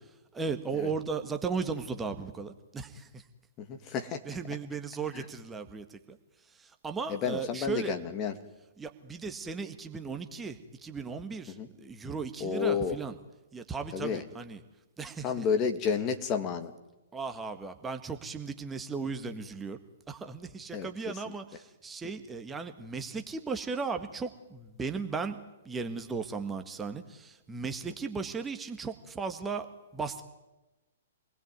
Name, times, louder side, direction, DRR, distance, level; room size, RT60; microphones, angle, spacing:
voice 1, 0.3-3.2 4.3-6.2 6.6-7.9 8.8-13.1 13.5-14.6 15.0-15.4 17.1-19.8 20.1-25.4 25.6-29.7 29.9-30.2, right 5 dB, 10° right, 6 dB, 1.7 m, -36 dB
voice 2, 3.6-4.4 5.1-5.3 7.1-8.4 11.5-11.7 12.4-13.0 13.9-14.2 15.2-16.7 20.7-21.4, left 6 dB, 30° left, 6 dB, 2.5 m, -31 dB
27.5 x 20.0 x 9.5 m, 1.1 s
figure-of-eight pair, 120°, 0 cm